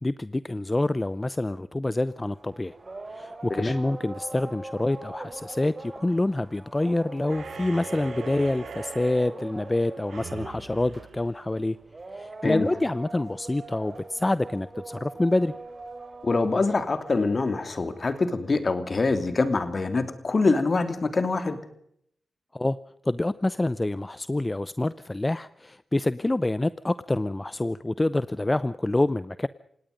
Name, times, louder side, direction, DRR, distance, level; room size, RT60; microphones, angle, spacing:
voice 1, 0.0-2.8 3.1-11.8 12.1-15.5 22.5-22.8 23.0-29.5, left 2 dB, 25° left, 16 dB, 0.7 m, -27 dB
sound 1, 2.1-18.5, right 2 dB, 40° right, 4.7 m, -42 dB
sound 2, 7.3-12.0, right 5 dB, 75° right, 3.2 m, -42 dB
voice 2, 16.2-21.6, left 3 dB, 50° left, 9 dB, 3.0 m, -25 dB
28.0 x 18.0 x 5.3 m, 0.70 s
supercardioid pair, 45°, 0 cm